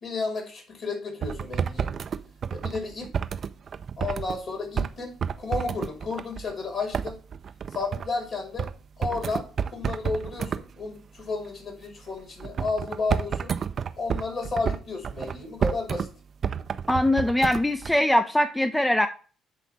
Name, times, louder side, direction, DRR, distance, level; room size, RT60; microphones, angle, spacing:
voice 1, 0.0-1.9 2.5-3.1 4.0-7.2 7.7-8.7 9.0-13.5 14.0-16.1, left 3 dB, 45° left, 3 dB, 3.3 m, -32 dB
sound 1, 1.2-4.4 4.8-4.9 5.2-6.5 6.9-8.1 8.6-8.7 9.0-10.6 12.4-16.1 16.4-17.9, right 7 dB, 45° right, 0.6 m, -30 dB
voice 2, 16.9-19.1, left 1 dB, 10° left, 8 dB, 0.6 m, -22 dB
8.3 x 3.3 x 6.0 m, 0.39 s
figure-of-eight pair, 45°, 0 cm